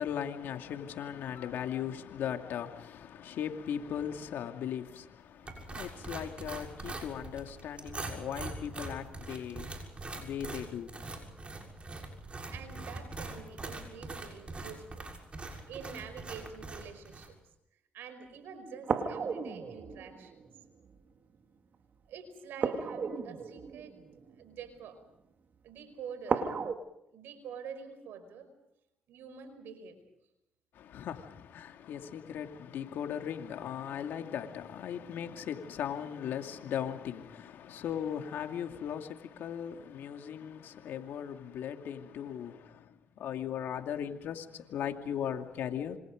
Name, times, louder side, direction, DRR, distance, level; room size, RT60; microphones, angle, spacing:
voice 1, 0.0-11.1 30.7-46.0, left 9 dB, 75° left, 2.5 m, -38 dB
sound 1, 5.5-17.3, right 2 dB, 30° right, 6.7 m, -43 dB
voice 2, 12.2-15.1 15.7-17.3 17.9-20.4 22.1-24.0 24.4-25.0 25.6-26.6 27.1-28.5 29.1-30.0, right 6 dB, 80° right, 5.1 m, -46 dB
sound 2, 18.8-21.0 22.6-24.8 26.3-26.7, right 5 dB, 55° right, 2.3 m, -35 dB
27.0 x 25.5 x 5.2 m
supercardioid pair, 70°, 4 cm